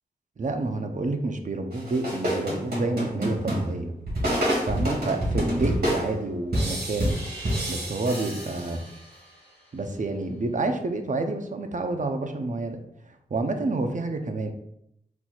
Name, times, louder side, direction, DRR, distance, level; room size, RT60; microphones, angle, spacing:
voice 1, 0.4-3.9 4.7-7.2 7.7-8.8 9.7-12.8 13.3-14.5, right 2 dB, 50° right, 5 dB, 0.7 m, -29 dB
sound 1, 1.7-9.1, equal, 70° right, 1.7 m, -28 dB
4.5 x 4.1 x 2.4 m, 0.75 s
cardioid pair, 45°, 16 cm